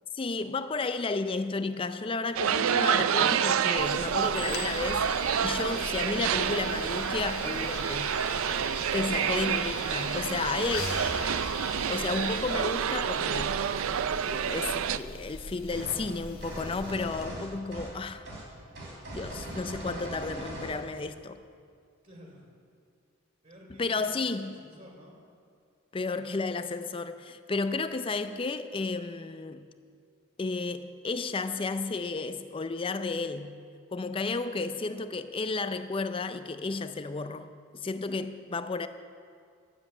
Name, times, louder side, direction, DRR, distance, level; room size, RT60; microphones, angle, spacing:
voice 1, 0.1-5.1 5.4-8.1 8.9-10.9 11.9-13.7 14.2-18.2 19.1-21.4 23.8-24.6 25.9-29.7 30.4-33.6 33.9-38.9, left 3 dB, 25° left, 0.4 m, -32 dB
sound 1, 2.4-15.0, right 8 dB, 80° right, 0.4 m, -28 dB
sound 2, 3.8-17.3, left 3 dB, 85° left, 1.1 m, -40 dB
sound 3, 15.7-16.1 16.4-18.0 18.3-18.5 18.8-20.8, right 1 dB, 55° right, 3.7 m, -40 dB
voice 2, 22.0-22.5 23.4-25.2, equal, 40° right, 2.9 m, -52 dB
12.0 x 7.5 x 8.0 m
head